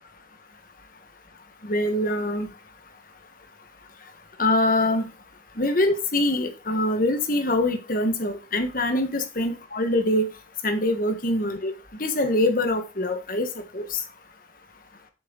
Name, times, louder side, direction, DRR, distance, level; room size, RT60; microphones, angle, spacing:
voice 1, 1.6-2.5 4.4-5.1 5.6-10.3 10.6-11.7 12.0-13.5 13.7-14.0, left 1 dB, 45° left, 7 dB, 1.5 m, -24 dB
7.4 x 6.8 x 4.0 m, 0.28 s
head